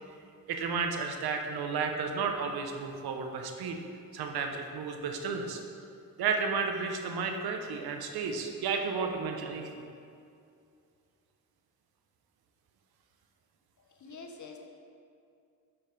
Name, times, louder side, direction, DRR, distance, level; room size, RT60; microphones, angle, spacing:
voice 1, 0.5-3.8 4.1-5.6 6.2-9.7, right 5 dB, 85° right, 4 dB, 0.8 m, -32 dB
voice 2, 13.8-14.6, left 4 dB, 55° left, 3 dB, 1.0 m, -47 dB
7.2 x 6.4 x 3.7 m, 2.4 s
cardioid pair, 65°, 36 cm